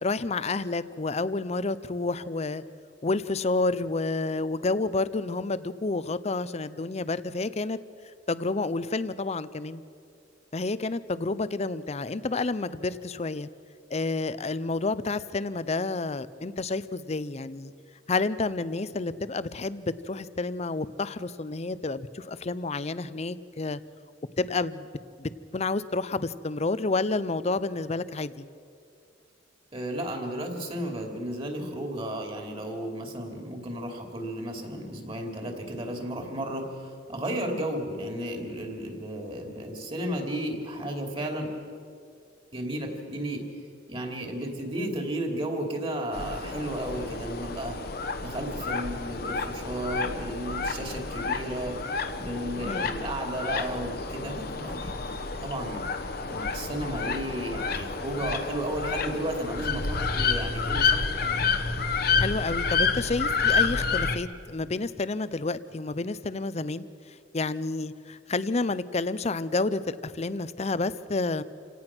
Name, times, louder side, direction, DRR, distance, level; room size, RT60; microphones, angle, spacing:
voice 1, 0.0-2.6 3.0-7.8 8.3-9.8 10.5-13.5 13.9-17.7 18.1-23.8 24.4-24.9 25.2-28.5 52.5-52.9 62.2-66.8 67.3-71.4, left 3 dB, 35° left, 15 dB, 0.6 m, -29 dB
voice 2, 29.7-41.5 42.5-43.4 43.9-47.8 48.2-51.8 52.1-55.9 56.2-61.3, right 1 dB, 30° right, 3 dB, 3.0 m, -33 dB
sound 1, 46.1-64.2, left 4 dB, 55° left, 1.2 m, -29 dB
28.0 x 17.5 x 6.1 m, 2.3 s
head